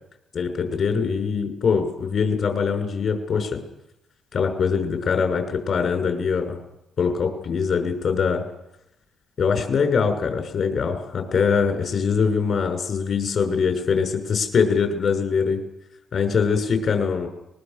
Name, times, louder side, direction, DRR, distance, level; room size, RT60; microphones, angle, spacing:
voice 1, 0.3-3.6 4.3-6.6 7.0-8.4 9.4-15.6 16.1-17.3, left 5 dB, 60° left, 5 dB, 6.0 m, -23 dB
24.0 x 21.5 x 6.9 m, 0.88 s
cardioid pair, 90°, 0 cm